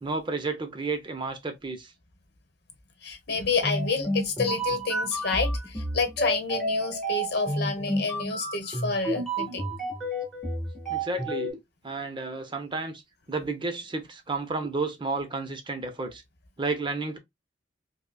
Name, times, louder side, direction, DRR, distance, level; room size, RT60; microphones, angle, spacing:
voice 1, 0.0-1.9 10.9-13.0 13.3-16.2 16.6-17.2, right 3 dB, 25° right, 0.6 m, -32 dB
voice 2, 3.0-9.8, left 4 dB, 60° left, 0.9 m, -29 dB
sound 1, 3.6-11.5, right 1 dB, ahead, 1.3 m, -30 dB
5.0 x 2.1 x 2.2 m
head